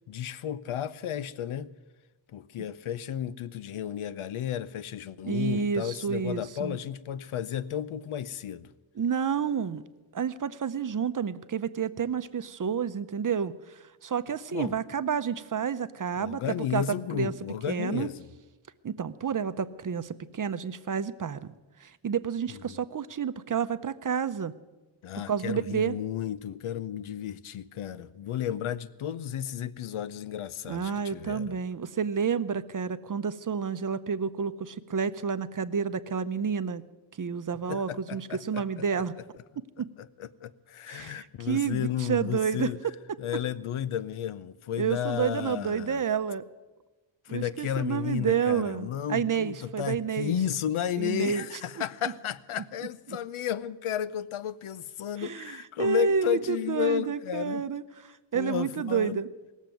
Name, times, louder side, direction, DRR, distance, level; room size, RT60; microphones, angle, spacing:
voice 1, 0.1-1.7 2.3-8.7 14.5-14.8 16.2-18.3 22.5-22.8 25.0-31.6 37.7-38.8 40.0-42.8 43.2-46.0 47.3-57.6 58.3-59.2, left 10 dB, 90° left, 0.7 m, -33 dB
voice 2, 5.2-6.8 9.0-9.8 10.1-16.4 16.7-16.8 17.1-17.3 17.7-18.1 18.8-21.5 21.8-24.5 25.3-25.9 30.7-36.8 37.2-39.1 39.8-39.9 40.9-42.7 44.8-46.4 47.3-50.4 51.0-51.5 53.1-53.2 55.2-57.8 58.3-59.3, right 7 dB, 40° right, 0.7 m, -30 dB
19.0 x 7.3 x 9.1 m
wide cardioid pair, 85°, 48 cm